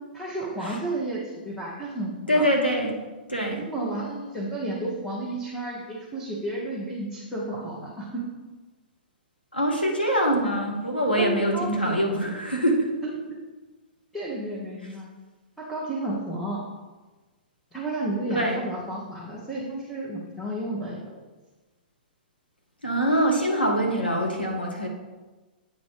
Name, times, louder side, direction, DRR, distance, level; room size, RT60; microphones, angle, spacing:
voice 1, 0.1-2.5 3.7-8.3 11.2-12.0 13.0-13.2 14.1-15.1 15.6-16.7 17.7-21.1, right 2 dB, 5° left, -5 dB, 1.2 m, -32 dB
voice 2, 2.3-2.9 3.3-3.6 9.5-12.9 18.3-18.6 22.8-24.9, equal, 90° left, 0 dB, 1.2 m, -24 dB
8.9 x 4.2 x 5.0 m, 1.2 s
figure-of-eight pair, 115°, 5 cm